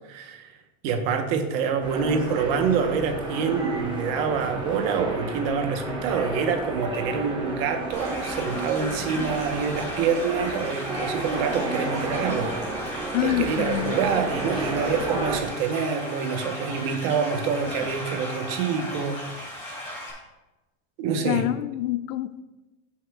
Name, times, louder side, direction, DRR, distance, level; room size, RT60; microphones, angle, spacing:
voice 1, 0.1-0.6 0.8-19.5 21.0-21.5, right 6 dB, 45° right, 7 dB, 0.9 m, -26 dB
sound 1, 1.8-15.4, right 2 dB, 10° right, 0.7 m, -32 dB
sound 2, 7.9-20.1, left 1 dB, 15° left, 2.3 m, -36 dB
voice 2, 13.1-13.9 21.2-22.4, left 14 dB, 65° left, 14 dB, 0.5 m, -26 dB
16.0 x 5.7 x 2.2 m, 1.1 s
supercardioid pair, 175°, 42 cm